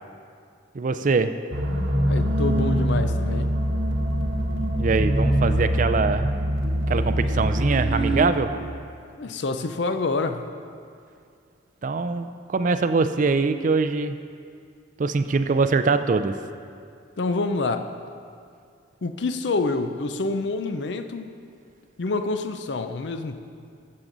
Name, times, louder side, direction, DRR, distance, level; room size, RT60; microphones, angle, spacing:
voice 1, 0.7-1.3 4.8-6.3 6.9-8.5 11.8-14.2 15.0-16.3, right 4 dB, 40° right, 10 dB, 0.4 m, -23 dB
sound 1, 1.5-8.2, equal, 85° right, 1.4 m, -23 dB
voice 2, 2.0-3.5 9.2-10.5 17.2-17.9 19.0-21.3 22.0-23.4, left 3 dB, 60° left, 9 dB, 0.5 m, -27 dB
14.0 x 7.5 x 3.9 m, 2.3 s
head